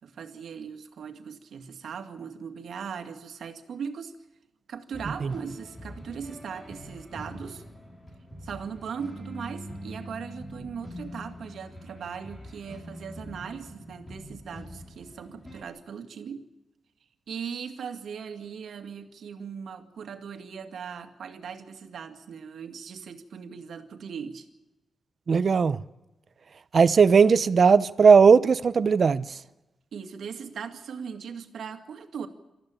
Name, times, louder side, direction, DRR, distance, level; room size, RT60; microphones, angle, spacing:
voice 1, 0.0-4.2 4.7-7.6 8.4-16.5 17.3-24.5 29.9-32.3, right 6 dB, 75° right, 2.1 m, -39 dB
sound 1, 4.9-15.6, equal, 20° left, 5.8 m, -44 dB
voice 2, 25.3-25.8 26.7-29.3, right 5 dB, 45° right, 0.7 m, -18 dB
27.0 x 14.5 x 9.0 m
wide cardioid pair, 130°, 0 cm